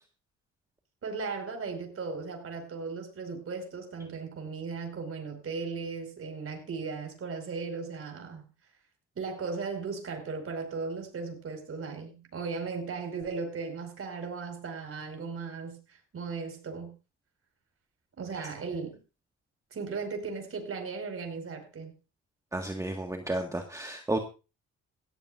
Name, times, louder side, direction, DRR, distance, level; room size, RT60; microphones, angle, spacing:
voice 1, 1.0-8.5 9.2-17.0 18.2-19.0 19.7-21.9, right 4 dB, 50° right, 5.1 m, -37 dB
voice 2, 22.5-24.2, right 1 dB, 10° right, 1.8 m, -32 dB
18.0 x 14.5 x 2.6 m
cardioid pair, 90°, 30 cm